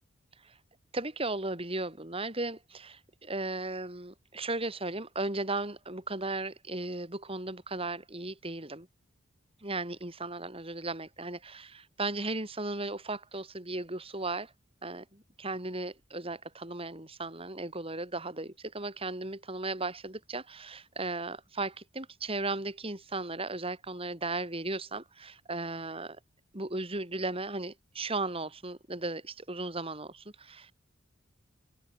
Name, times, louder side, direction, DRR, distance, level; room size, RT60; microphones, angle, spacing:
voice 1, 0.9-8.9 9.6-14.5 14.8-26.2 26.5-30.7, right 2 dB, 30° right, 4.9 m, -36 dB
open air
head